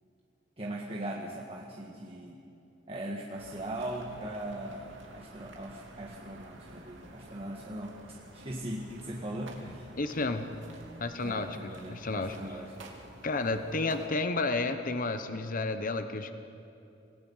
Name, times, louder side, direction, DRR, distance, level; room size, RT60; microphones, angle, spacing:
voice 1, 0.6-2.4 2.9-9.9 11.2-12.7, right 1 dB, 30° right, -3 dB, 1.7 m, -40 dB
sound 1, 3.4-14.1, right 2 dB, 75° right, 2.7 m, -50 dB
voice 2, 10.0-10.5 11.0-12.3 13.2-16.3, left 3 dB, 45° left, 9 dB, 1.0 m, -31 dB
26.5 x 18.5 x 5.6 m, 2.8 s
head